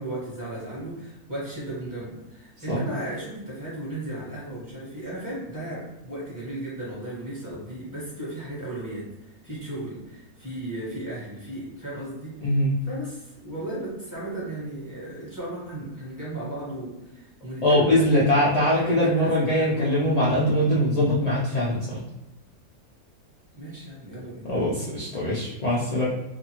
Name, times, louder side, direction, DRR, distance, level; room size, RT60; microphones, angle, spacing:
voice 1, 0.0-20.0 23.5-24.5, right 1 dB, 15° right, -8 dB, 1.1 m, -35 dB
voice 2, 12.4-12.7 17.6-22.0 24.5-26.1, left 1 dB, 65° left, -8 dB, 0.4 m, -22 dB
2.5 x 2.4 x 2.9 m, 0.95 s
omnidirectional pair, 1.5 m